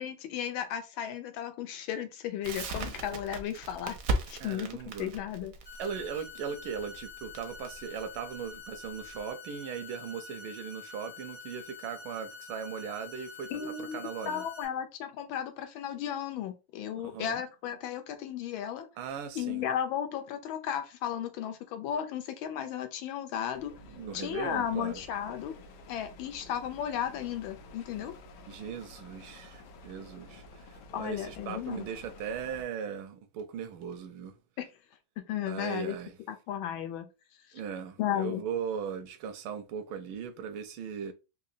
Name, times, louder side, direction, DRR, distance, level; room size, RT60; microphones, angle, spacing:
voice 1, 0.0-4.0 4.3-5.5 13.5-14.0 14.3-18.9 19.3-23.7 24.1-25.6 25.9-28.1 30.9-31.9 34.6-34.7 35.2-36.0 36.3-37.1 38.0-38.4, left 9 dB, 85° left, 1.4 m, -34 dB
Crackle, 2.4-9.2, right 2 dB, 70° right, 0.8 m, -37 dB
voice 2, 4.4-5.1 5.8-14.4 17.0-17.4 19.0-19.6 23.8-25.0 28.0-28.1 28.5-34.3 35.5-36.1 37.5-41.1, right 7 dB, 85° right, 1.4 m, -38 dB
sound 1, 5.7-14.7, left 5 dB, 50° left, 1.1 m, -47 dB
sound 2, 23.5-32.6, left 2 dB, 70° left, 1.2 m, -51 dB
3.9 x 2.7 x 2.6 m
omnidirectional pair, 2.1 m